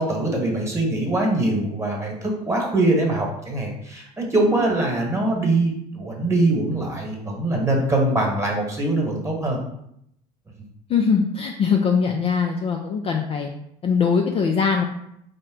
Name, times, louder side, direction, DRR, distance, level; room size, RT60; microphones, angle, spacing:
voice 1, 0.0-9.6, right 2 dB, 15° right, -1 dB, 1.3 m, -23 dB
voice 2, 10.9-13.5 13.8-14.8, left 6 dB, 30° left, 2 dB, 0.4 m, -21 dB
4.2 x 2.1 x 3.8 m, 0.76 s
hypercardioid pair, 75°, 21 cm